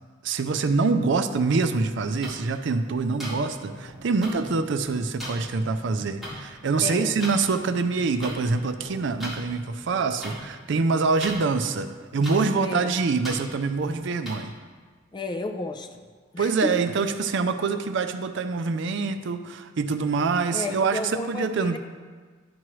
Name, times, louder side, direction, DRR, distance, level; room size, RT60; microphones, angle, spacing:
voice 1, 0.2-14.5 16.4-21.8, right 4 dB, 65° right, 9 dB, 0.4 m, -25 dB
sound 1, 2.2-2.3 3.2-3.3 4.2-4.3 5.2-5.3 6.2-6.3 7.2-7.3 8.2-8.3 9.2-9.3 10.2-10.3 11.2-11.4 12.2-12.3 13.2-13.3 14.2-14.3, equal, ahead, 2.2 m, -35 dB
sound 2, 3.5-15.4, equal, 80° left, 1.7 m, -46 dB
voice 2, 6.8-7.2 12.6-12.9 15.1-16.0 16.3-16.7 20.5-21.8, left 2 dB, 20° left, 6 dB, 0.4 m, -32 dB
11.0 x 6.1 x 3.1 m, 1.5 s
head